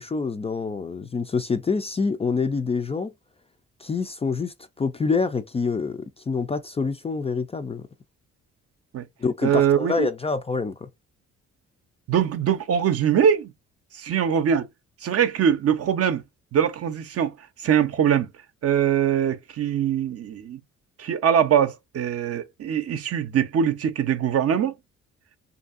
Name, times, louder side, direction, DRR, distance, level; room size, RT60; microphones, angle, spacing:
voice 1, 0.0-3.1 3.8-7.8 9.2-10.9, left 4 dB, 20° left, 0.3 m, -26 dB
voice 2, 9.4-10.1 12.1-13.5 14.0-14.7 15.0-16.2 16.5-17.3 17.6-18.3 18.6-20.6 21.0-24.7, right 8 dB, 50° right, 0.6 m, -22 dB
2.7 x 2.6 x 2.4 m
cardioid pair, 90°, 30 cm